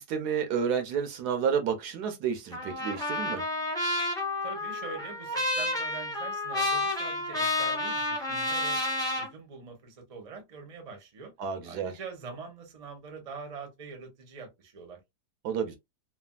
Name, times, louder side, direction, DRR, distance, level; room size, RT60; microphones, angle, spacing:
voice 1, 0.0-3.4 11.4-11.9 15.4-15.8, right 7 dB, 70° right, 1.1 m, -30 dB
Trumpet, 2.5-9.3, left 2 dB, 5° left, 0.7 m, -30 dB
voice 2, 4.4-8.8 9.1-11.3 11.6-15.0, right 4 dB, 35° right, 0.7 m, -44 dB
3.3 x 2.3 x 2.3 m
omnidirectional pair, 1.9 m